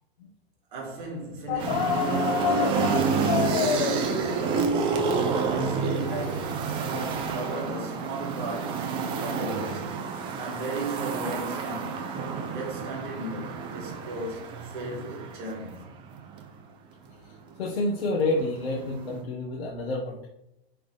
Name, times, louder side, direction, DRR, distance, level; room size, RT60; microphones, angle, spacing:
voice 1, 0.7-8.9 9.2-10.0 10.3-12.0 12.5-15.9, right 2 dB, 55° right, 2.7 m, -36 dB
sound 1, 1.5-7.4, left 10 dB, 45° left, 0.5 m, -31 dB
sound 2, 1.6-16.4 17.5-19.2, right 5 dB, 15° right, 0.5 m, -29 dB
voice 2, 17.2-20.3, left 2 dB, 85° left, 1.6 m, -29 dB
10.0 x 3.9 x 3.5 m
supercardioid pair, 160°, 31 cm